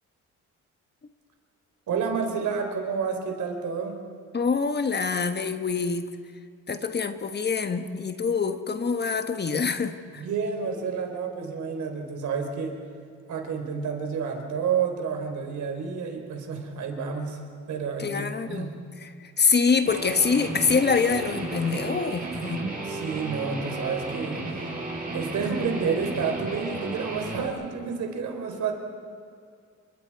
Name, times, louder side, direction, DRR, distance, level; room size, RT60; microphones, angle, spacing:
voice 1, 1.9-4.0 10.2-12.7 13.3-17.4 17.7-18.1 18.5-18.7 22.8-24.6 25.1-28.7, right 6 dB, 70° right, 4 dB, 4.0 m, -30 dB
voice 2, 4.3-6.1 6.7-10.2 18.0-18.7 19.0-19.1 19.4-22.6, left 5 dB, 35° left, 9 dB, 1.3 m, -25 dB
Guitar, 19.9-27.5, right 2 dB, 30° right, 6.6 m, -33 dB
29.0 x 25.5 x 4.7 m, 2.3 s
cardioid pair, 90°, 30 cm